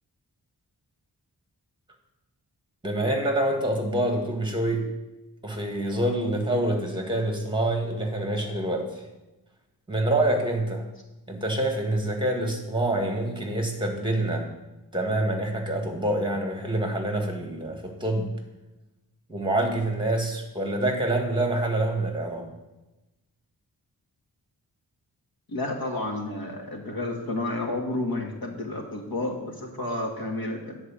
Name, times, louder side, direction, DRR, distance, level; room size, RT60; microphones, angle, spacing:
voice 1, 2.8-4.9 5.4-9.0 9.9-10.9 11.3-14.5 14.9-18.3 19.3-22.5, right 1 dB, 10° right, 3 dB, 2.0 m, -26 dB
voice 2, 25.5-30.8, left 2 dB, 65° left, 1 dB, 1.8 m, -31 dB
9.9 x 4.6 x 7.3 m, 1.0 s
wide cardioid pair, 90°, 38 cm